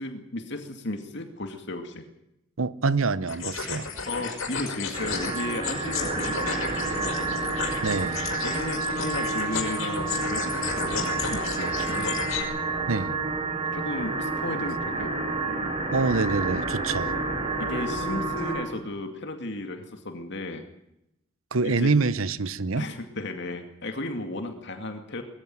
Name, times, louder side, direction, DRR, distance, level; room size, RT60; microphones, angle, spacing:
voice 1, 0.0-2.1 4.1-7.2 8.4-12.2 13.7-15.2 17.6-20.6 21.6-21.9 22.8-25.2, left 2 dB, 60° left, 2.4 m, -34 dB
voice 2, 2.6-3.9 7.8-8.3 12.9-13.2 15.9-17.1 21.5-22.9, right 4 dB, 90° right, 0.9 m, -26 dB
sound 1, 3.3-12.4, left 6 dB, 90° left, 5.2 m, -33 dB
sound 2, 4.9-18.7, right 3 dB, 30° right, 5.1 m, -29 dB
20.5 x 15.0 x 9.3 m
head